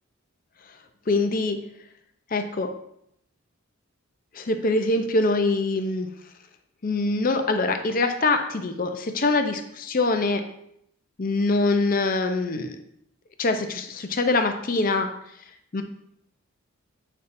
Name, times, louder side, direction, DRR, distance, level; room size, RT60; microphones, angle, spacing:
voice 1, 1.1-1.6 2.3-2.7 4.3-6.1 6.8-10.4 11.2-12.8 13.4-15.1 15.7-15.8, left 2 dB, 40° left, 7 dB, 0.6 m, -24 dB
8.4 x 5.4 x 2.6 m, 0.74 s
head